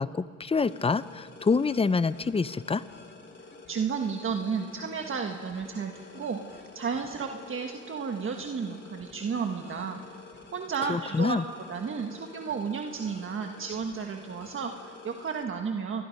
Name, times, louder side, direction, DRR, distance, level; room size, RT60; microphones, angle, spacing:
voice 1, 0.0-2.8 10.9-11.4, left 4 dB, 20° left, 16 dB, 0.6 m, -26 dB
sound 1, 0.6-15.4, left 4 dB, 35° left, 2.9 m, -49 dB
voice 2, 3.7-10.0 10.5-11.4 11.7-16.0, right 6 dB, 45° right, 3 dB, 1.5 m, -33 dB
28.5 x 21.5 x 5.3 m, 2.4 s
cardioid pair, 90°, 30 cm